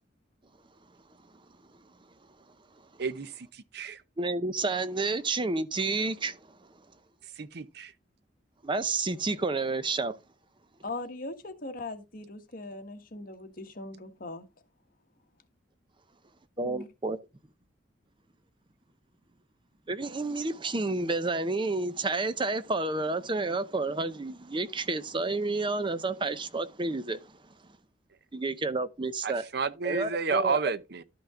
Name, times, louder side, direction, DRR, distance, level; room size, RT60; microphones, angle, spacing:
voice 1, 3.0-4.0 7.4-7.9 29.2-31.0, right 5 dB, 60° right, 0.7 m, -31 dB
voice 2, 4.2-6.4 8.6-10.2 16.6-17.2 19.9-27.2 28.3-29.4 29.8-30.6, right 3 dB, 25° right, 0.7 m, -30 dB
voice 3, 10.8-14.5 16.6-16.9, left 2 dB, 50° left, 1.5 m, -40 dB
12.0 x 5.7 x 3.7 m
head